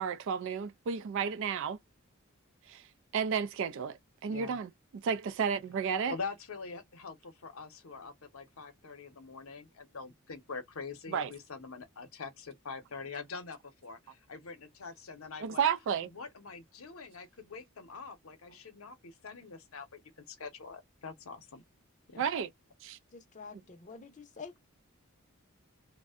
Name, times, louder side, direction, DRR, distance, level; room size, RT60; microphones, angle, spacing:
voice 1, 0.0-1.8 2.7-2.8 3.1-4.7 5.0-6.1 11.1-11.3 15.4-16.1 22.2-22.5 22.8-23.0, right 7 dB, 60° right, 0.3 m, -32 dB
voice 2, 6.1-15.7 16.1-20.0 20.3-21.6 22.1-22.2, left 4 dB, 75° left, 0.7 m, -44 dB
voice 3, 23.1-24.5, left 5 dB, 35° left, 0.6 m, -47 dB
2.5 x 2.1 x 2.4 m
head